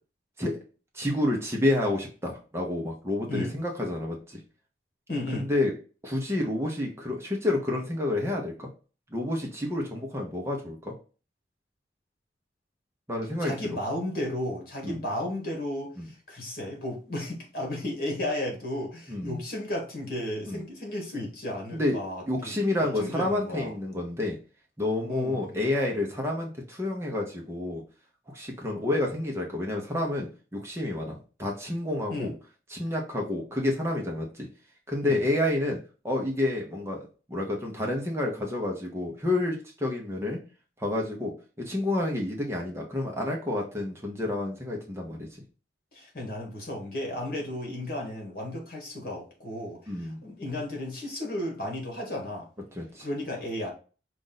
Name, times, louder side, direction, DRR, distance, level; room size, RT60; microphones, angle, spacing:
voice 1, 0.9-4.4 5.3-5.7 6.0-8.7 9.1-10.9 13.1-13.5 14.8-15.0 16.0-16.1 19.1-19.4 20.5-20.6 21.7-22.0 22.3-24.4 24.8-27.8 28.3-32.3 32.7-34.5 34.9-35.8 36.0-40.4 40.8-45.3 49.9-50.2 52.7-53.1, left 1 dB, 15° right, 0 dB, 0.8 m, -29 dB
voice 2, 5.1-5.5 13.4-22.6 23.0-23.7 25.1-25.6 32.1-32.3 35.0-35.2 45.9-52.5 53.0-53.7, left 1 dB, 50° left, 1 dB, 1.6 m, -34 dB
5.2 x 2.5 x 3.9 m, 0.36 s
head